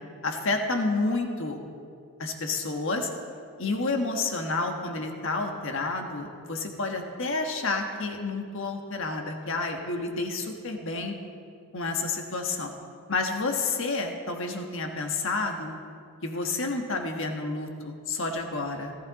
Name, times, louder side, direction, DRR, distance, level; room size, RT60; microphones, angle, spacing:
voice 1, 0.2-1.6 2.2-3.1 3.6-11.1 11.7-12.7 13.1-15.7 16.2-18.9, left 3 dB, 60° left, 3 dB, 1.5 m, -30 dB
18.5 x 14.0 x 4.2 m, 2.3 s
head